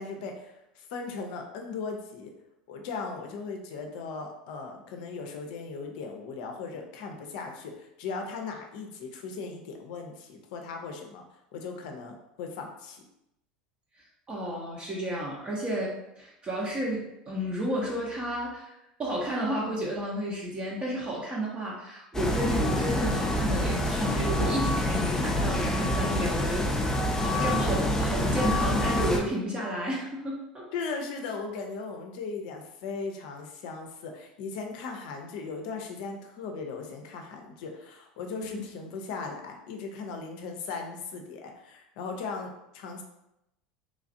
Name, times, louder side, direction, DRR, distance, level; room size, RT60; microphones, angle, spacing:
voice 1, 0.0-2.3 2.7-11.2 11.5-13.0 30.7-43.0, left 4 dB, 60° left, 3 dB, 0.5 m, -38 dB
voice 2, 14.0-30.7 38.5-38.6, equal, 25° right, -4 dB, 0.7 m, -32 dB
sound 1, 22.1-29.2, left 1 dB, 10° left, 0.4 m, -27 dB
3.1 x 2.4 x 2.6 m, 0.85 s
hypercardioid pair, 80°, 5 cm